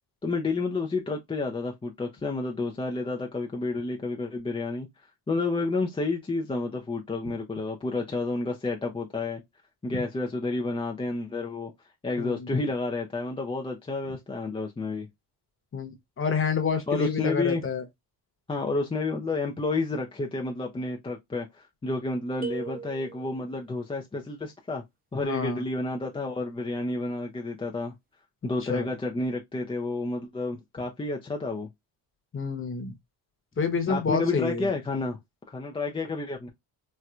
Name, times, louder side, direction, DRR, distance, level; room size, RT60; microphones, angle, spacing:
voice 1, 0.2-4.9 5.3-9.4 9.8-11.7 12.0-15.1 16.9-17.6 18.5-24.8 25.1-27.9 28.4-31.7 33.9-35.2 35.5-36.5, left 3 dB, 15° left, 0.4 m, -30 dB
voice 2, 16.2-17.8 25.2-25.6 28.7-28.9 32.3-32.9 33.6-34.7, left 5 dB, 30° left, 0.9 m, -28 dB
sound 1, 22.4-23.6, right 5 dB, 20° right, 0.7 m, -38 dB
4.3 x 2.1 x 2.4 m
cardioid pair, 130°, 43 cm